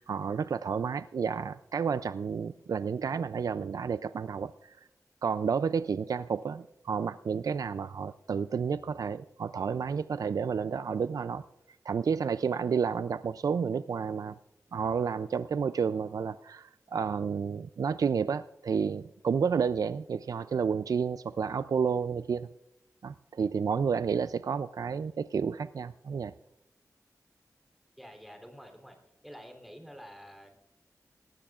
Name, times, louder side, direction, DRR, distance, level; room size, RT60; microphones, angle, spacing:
voice 1, 0.0-4.8 5.2-11.4 11.8-14.4 14.7-22.5 23.0-26.3, right 6 dB, 70° right, 14 dB, 0.3 m, -31 dB
voice 2, 28.0-29.0 29.2-30.6, equal, ahead, 4 dB, 3.3 m, -48 dB
19.5 x 15.5 x 2.4 m, 0.90 s
wide cardioid pair, 65°, 6 cm